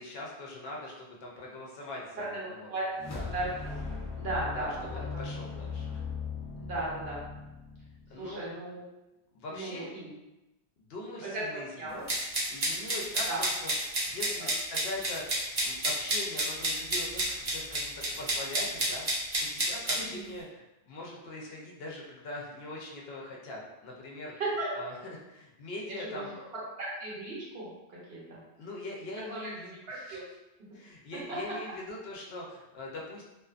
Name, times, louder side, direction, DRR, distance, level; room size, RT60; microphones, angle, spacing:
voice 1, 0.0-2.7 3.1-3.4 4.5-6.0 8.1-8.6 9.3-9.9 10.8-12.1 12.5-24.3 24.7-26.3 28.6-30.2 30.7-33.2, left 2 dB, 70° left, -2 dB, 0.8 m, -42 dB
voice 2, 2.2-2.9 3.3-3.5 4.2-4.8 5.1-5.2 6.6-7.2 8.2-8.8 9.5-10.1 11.2-11.4 11.8-12.0 13.2-13.4 14.4-14.5 19.9-20.2 24.4-24.7 25.9-26.3 26.8-28.4 29.3-29.5 29.9-30.2, right 2 dB, 65° right, -6 dB, 1.0 m, -36 dB
sound 1, 2.9-8.3, left 5 dB, 25° left, 0.4 m, -39 dB
sound 2, 12.1-20.0, right 1 dB, 40° right, 0.6 m, -30 dB
2.4 x 2.4 x 2.4 m, 0.98 s
omnidirectional pair, 1.1 m